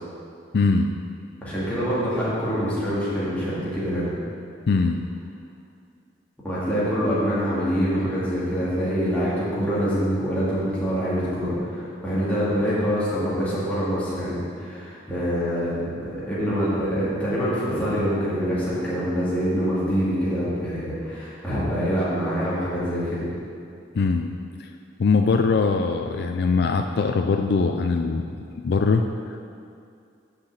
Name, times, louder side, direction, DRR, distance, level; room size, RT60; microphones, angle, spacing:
voice 1, 0.5-0.9 4.7-5.0 23.9-24.3 24.6-24.7 25.0-28.2 28.5-29.4, left 4 dB, 60° left, 5 dB, 0.4 m, -21 dB
voice 2, 1.4-4.1 6.4-23.3, equal, 10° left, -10 dB, 2.2 m, -25 dB
6.7 x 5.8 x 7.4 m, 2.4 s
head